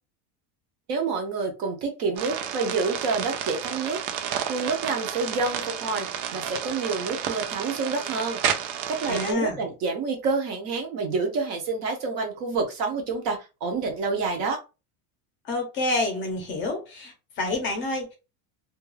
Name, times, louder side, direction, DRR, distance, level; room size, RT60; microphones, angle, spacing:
voice 1, 0.9-4.0 4.5-8.4 8.9-14.6, right 4 dB, 40° right, 0.5 m, -28 dB
sound 1, 2.2-9.3, right 9 dB, 80° right, 0.6 m, -31 dB
voice 2, 9.1-9.6 15.4-18.2, left 2 dB, 30° left, 0.5 m, -28 dB
2.3 x 2.2 x 3.1 m
cardioid pair, 180°, 41 cm